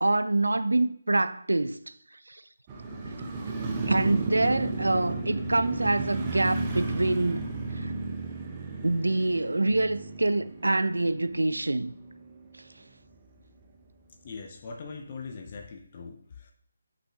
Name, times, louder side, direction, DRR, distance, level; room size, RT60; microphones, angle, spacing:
voice 1, 0.0-1.8 2.3-2.4 3.9-7.4 7.8-7.9 8.8-11.9, right 2 dB, 70° right, 0.5 m, -25 dB
Motorcycle, 2.7-12.8 13.1-13.2, right 3 dB, 20° right, 0.8 m, -34 dB
voice 2, 14.2-16.5, left 4 dB, 35° left, 0.7 m, -41 dB
9.7 x 5.9 x 2.4 m
figure-of-eight pair, 150°, 0 cm